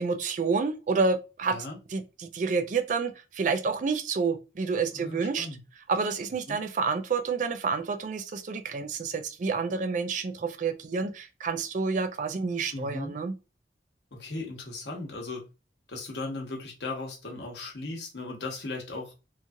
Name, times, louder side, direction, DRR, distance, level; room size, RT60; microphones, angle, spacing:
voice 1, 0.0-1.6 1.9-5.5 5.9-13.3, right 4 dB, 45° right, 0.3 m, -29 dB
voice 2, 4.9-5.6 6.5-6.6 12.7-13.1 14.1-15.4 15.9-19.1, left 2 dB, 75° left, 0.9 m, -37 dB
3.0 x 2.3 x 2.6 m
head